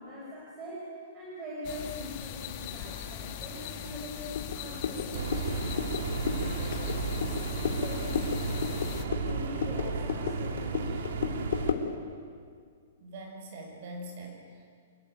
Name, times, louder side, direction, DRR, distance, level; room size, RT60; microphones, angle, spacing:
voice 1, 0.0-8.7 9.0-11.0, left 1 dB, 20° right, -5 dB, 5.5 m, -43 dB
sound 1, 1.6-9.0, left 9 dB, 30° left, 1.7 m, -40 dB
sound 2, 4.4-11.9, left 7 dB, 65° left, 3.1 m, -34 dB
sound 3, 5.1-11.7, right 4 dB, 65° right, 2.9 m, -33 dB
voice 2, 13.0-14.7, right 1 dB, 40° right, 3 dB, 6.4 m, -43 dB
27.0 x 22.5 x 9.2 m, 2.1 s
hypercardioid pair, 175°, 0 cm